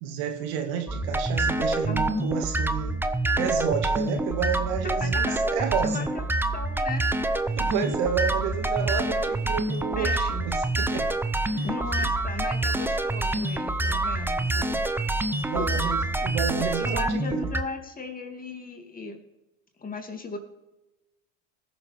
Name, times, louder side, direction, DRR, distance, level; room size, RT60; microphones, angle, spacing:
voice 1, 0.0-3.0 3.4-6.1 7.6-11.1 11.5-11.7 12.0-12.1 15.4-17.5, right 8 dB, 65° right, 5 dB, 1.9 m, -30 dB
sound 1, 0.9-17.6, right 2 dB, 5° right, 0.7 m, -26 dB
voice 2, 1.9-2.3 4.8-6.2 6.5-7.2 10.0-10.2 11.6-14.9 15.3-15.9 16.9-19.2 19.8-20.4, left 4 dB, 25° left, 3 dB, 2.4 m, -37 dB
20.5 x 7.0 x 3.5 m, 1.0 s
hypercardioid pair, 80°, 37 cm